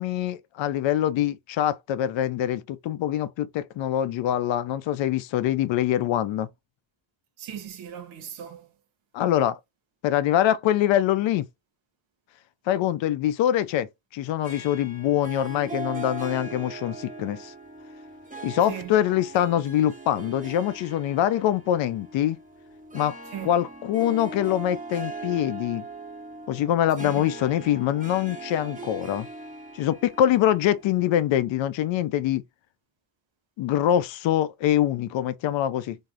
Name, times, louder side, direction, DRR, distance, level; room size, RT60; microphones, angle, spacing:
voice 1, 0.0-6.5 9.1-9.6 10.0-11.5 12.7-17.5 18.4-22.4 22.9-23.1 23.4-25.8 26.5-29.3 29.7-32.4 33.6-36.0, left 11 dB, 75° left, 0.5 m, -24 dB
voice 2, 7.4-8.7 18.6-19.0 23.3-23.5 27.0-27.3, right 9 dB, 85° right, 0.7 m, -38 dB
Harp, 14.4-31.2, right 3 dB, 15° right, 0.8 m, -40 dB
3.4 x 2.0 x 2.4 m
cardioid pair, 70°, 46 cm